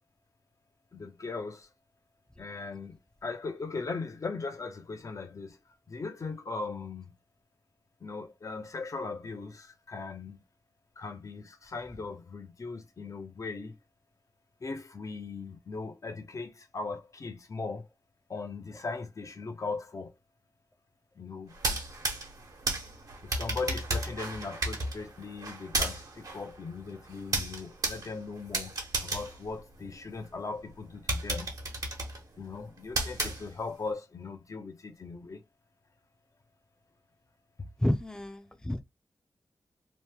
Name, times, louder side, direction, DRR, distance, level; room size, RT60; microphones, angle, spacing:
voice 1, 0.9-1.7 2.4-5.6 5.9-7.1 8.0-10.4 11.0-13.8 14.6-17.9 18.3-20.1 21.2-21.5 23.2-28.7 29.0-31.5 32.4-35.4 37.6-37.7, left 4 dB, 50° left, 0.8 m, -39 dB
sound 1, 21.5-30.3 30.7-30.8 31.1-33.9, right 2 dB, 65° right, 1.2 m, -34 dB
voice 2, 37.8-38.8, left 1 dB, 10° left, 0.7 m, -30 dB
3.1 x 2.1 x 3.3 m
cardioid pair, 50°, 7 cm